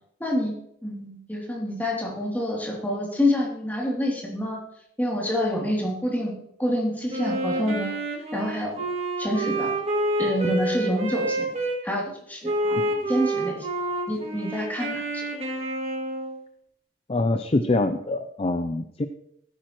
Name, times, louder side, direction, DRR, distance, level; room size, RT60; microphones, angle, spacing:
voice 1, 0.2-0.5 0.8-4.6 5.0-6.3 6.6-8.0 8.3-8.9 9.2-9.7 10.2-11.5 11.8-13.7 14.1-15.3, equal, 10° left, -2 dB, 2.8 m, -27 dB
Wind instrument woodwind instrument, 7.1-11.8 12.4-16.4, right 1 dB, 35° right, 2.3 m, -28 dB
voice 2, 17.1-19.1, left 2 dB, 35° left, 8 dB, 0.5 m, -25 dB
15.5 x 9.0 x 3.0 m, 0.74 s
head